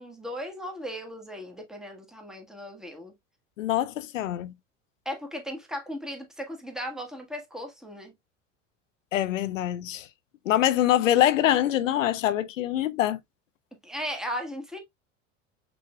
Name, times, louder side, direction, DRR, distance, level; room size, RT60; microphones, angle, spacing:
voice 1, 0.0-3.1 5.0-8.1 13.8-14.8, equal, ahead, 1.4 m, -36 dB
voice 2, 3.6-4.5 9.1-10.1 10.5-13.2, left 12 dB, 85° left, 0.6 m, -24 dB
6.0 x 3.2 x 2.2 m
hypercardioid pair, 80°, 38 cm